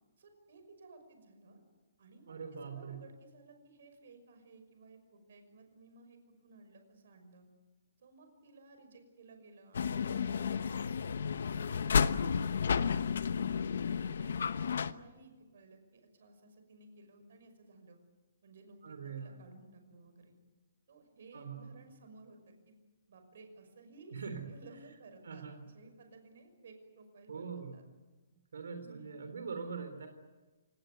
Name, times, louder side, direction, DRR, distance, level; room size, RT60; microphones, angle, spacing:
voice 1, 0.2-1.6 2.0-7.4 8.0-13.0 13.5-18.0 18.4-20.4 20.9-22.8 23.1-24.2 24.5-27.8 28.8-29.1, right 3 dB, 50° right, 6 dB, 5.8 m, -57 dB
voice 2, 2.3-3.0 18.8-19.4 21.3-21.8 24.1-24.5 25.2-25.6 27.3-27.7 28.5-30.1, right 5 dB, 85° right, 7 dB, 3.5 m, -42 dB
sound 1, 9.7-14.9, left 6 dB, 60° left, 1.0 m, -32 dB
28.5 x 18.5 x 9.5 m, 1.2 s
hypercardioid pair, 180°, 0 cm